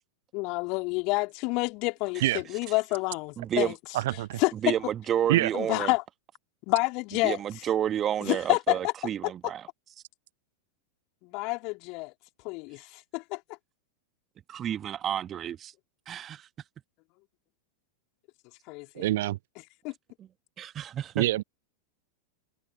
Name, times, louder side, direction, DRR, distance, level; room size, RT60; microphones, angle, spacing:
voice 1, 0.3-3.8 4.4-4.9 5.5-6.0 6.7-7.4 8.2-8.9 9.2-9.5 11.2-12.1 12.4-13.6 18.7-19.1 19.8-19.9, left 27 dB, 40° left, 3.0 m, -29 dB
voice 2, 3.4-3.7 4.6-5.9 7.2-9.6 14.5-15.7 16.1-16.5 20.6-21.2, right 10 dB, 25° right, 1.6 m, -30 dB
voice 3, 3.9-4.4 5.3-5.5 19.0-19.4 21.2-21.4, right 16 dB, 55° right, 0.6 m, -25 dB
figure-of-eight pair, 90°, 0 cm